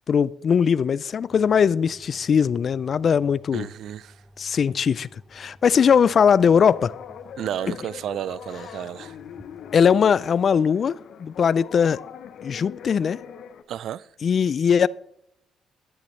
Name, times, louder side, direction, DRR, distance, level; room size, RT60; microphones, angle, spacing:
voice 1, 0.1-3.7 4.4-6.9 7.7-7.8 9.7-12.0 12.4-13.2 14.2-14.9, left 7 dB, 50° left, 0.3 m, -20 dB
sound 1, 1.3-10.0, equal, ahead, 0.9 m, -53 dB
voice 2, 3.5-4.1 7.4-9.1 13.7-14.1, right 10 dB, 70° right, 0.3 m, -32 dB
sound 2, 6.2-13.6, left 8 dB, 70° left, 0.7 m, -42 dB
12.5 x 10.5 x 3.2 m
cardioid pair, 90°, 0 cm